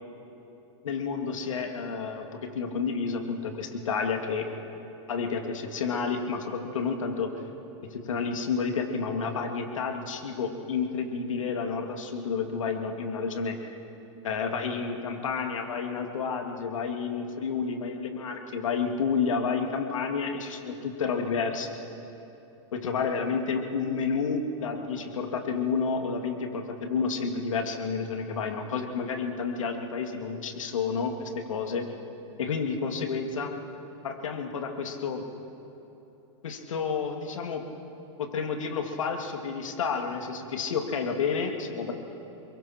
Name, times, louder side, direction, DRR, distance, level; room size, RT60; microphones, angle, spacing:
voice 1, 0.8-4.5 5.1-7.3 7.9-13.6 14.2-21.8 22.7-31.9 32.4-33.5 34.0-35.2 36.4-37.6 38.2-41.9, left 5 dB, 90° left, 3 dB, 2.6 m, -30 dB
28.0 x 22.5 x 4.5 m, 3.0 s
hypercardioid pair, 130°, 16 cm